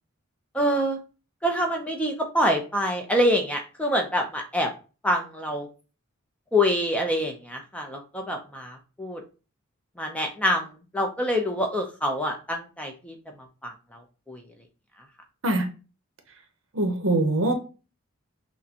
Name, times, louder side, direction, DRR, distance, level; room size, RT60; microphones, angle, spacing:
voice 1, 0.5-1.0 1.4-4.7 5.0-5.7 6.5-9.2 10.0-10.7 10.9-13.1 13.6-14.0 14.3-14.4, equal, 5° left, 2 dB, 0.6 m, -26 dB
voice 2, 16.7-17.5, right 2 dB, 70° right, 6 dB, 0.8 m, -23 dB
6.1 x 2.2 x 2.8 m, 0.33 s
head